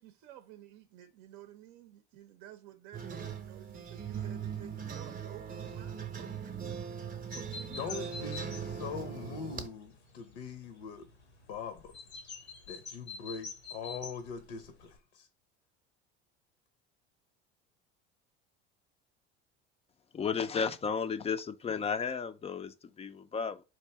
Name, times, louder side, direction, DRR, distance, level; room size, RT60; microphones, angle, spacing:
voice 1, 0.0-8.1, right 13 dB, 60° right, 0.6 m, -53 dB
sound 1, 2.9-9.7, right 7 dB, 25° right, 0.7 m, -40 dB
sound 2, 7.3-15.0, left 4 dB, 90° left, 1.1 m, -47 dB
voice 2, 7.7-11.1 11.5-12.0 12.7-15.3, left 6 dB, 65° left, 0.8 m, -42 dB
voice 3, 20.1-23.6, left 6 dB, 20° left, 0.4 m, -33 dB
4.5 x 2.6 x 3.3 m
hypercardioid pair, 70°, 32 cm